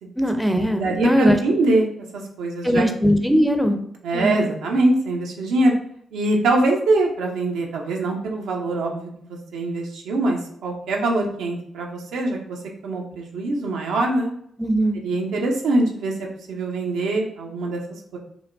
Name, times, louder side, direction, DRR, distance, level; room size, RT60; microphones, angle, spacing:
voice 1, 0.2-1.4 2.6-3.8 4.1-4.4 14.6-15.0, equal, ahead, 6 dB, 0.5 m, -20 dB
voice 2, 0.8-1.9 2.4-2.8 4.0-5.7 6.1-12.6 12.8-14.3 15.0-16.1 16.5-17.8 18.1-18.2, right 2 dB, 80° right, 0 dB, 0.6 m, -23 dB
4.5 x 2.1 x 2.6 m, 0.66 s
supercardioid pair, 45°, 0 cm